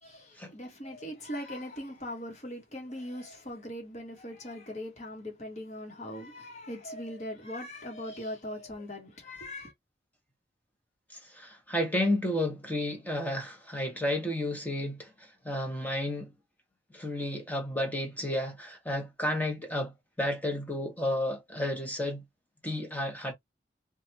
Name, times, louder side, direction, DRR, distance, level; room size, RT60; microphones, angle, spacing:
voice 1, 0.0-9.7, left 1 dB, 40° left, 1.2 m, -40 dB
voice 2, 11.1-16.3 16.9-22.2 22.6-23.3, left 1 dB, 10° left, 1.0 m, -32 dB
3.2 x 2.4 x 2.8 m
head